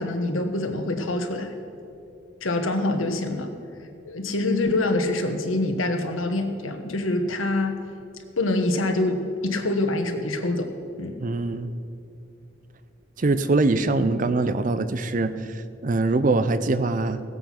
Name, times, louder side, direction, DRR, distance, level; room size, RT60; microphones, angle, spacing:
voice 1, 0.0-1.5 2.4-3.5 4.0-7.8 8.4-10.7 11.0-11.2, left 2 dB, 90° left, 6 dB, 1.3 m, -25 dB
voice 2, 11.2-11.7 13.2-17.2, right 3 dB, 40° right, 12 dB, 0.5 m, -23 dB
17.0 x 7.9 x 5.8 m, 2.7 s
head